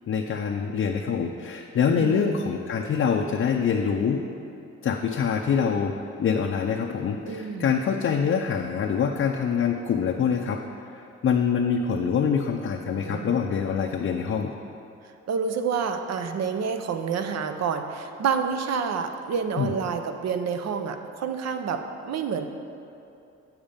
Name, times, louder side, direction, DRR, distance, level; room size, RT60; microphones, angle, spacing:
voice 1, 0.1-4.2 4.8-14.5 19.6-19.8, left 6 dB, 45° left, 1 dB, 0.6 m, -25 dB
voice 2, 2.0-2.4 7.3-7.7 12.9-13.3 15.3-22.5, right 6 dB, 60° right, 7 dB, 0.7 m, -28 dB
8.0 x 7.2 x 5.2 m, 2.7 s
cardioid pair, 90°, 30 cm